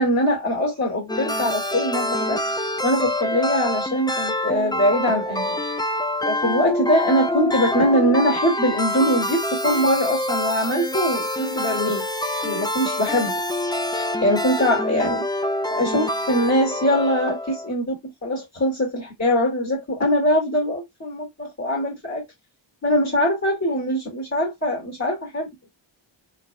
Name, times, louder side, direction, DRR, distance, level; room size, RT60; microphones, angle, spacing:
voice 1, 0.0-2.4 2.8-5.6 6.2-12.0 12.4-13.3 13.9-15.2 15.7-17.9 18.2-22.2 22.8-25.5, equal, 35° left, 2.4 m, -22 dB
sound 1, 1.1-17.7, left 1 dB, 10° left, 0.6 m, -26 dB
4.0 x 4.0 x 2.3 m
wide cardioid pair, 85°, 47 cm